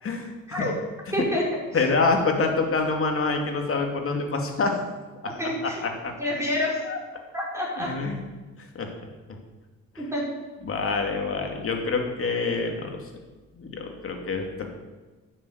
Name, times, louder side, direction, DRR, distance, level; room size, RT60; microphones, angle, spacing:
voice 1, 0.0-0.3 0.7-0.8 1.7-4.8 5.2-5.3 5.8-6.1 6.9-7.0 7.8-8.2 8.7-8.9 10.7-13.0 13.6-14.7, left 3 dB, 45° left, 3 dB, 2.5 m, -26 dB
voice 2, 1.1-1.5 1.7-1.9 5.2-5.8 6.2-6.8 7.3-7.9 10.0-10.3, left 1 dB, 10° right, -4 dB, 4.9 m, -28 dB
10.5 x 7.4 x 8.1 m, 1.3 s
cardioid pair, 90°, 30 cm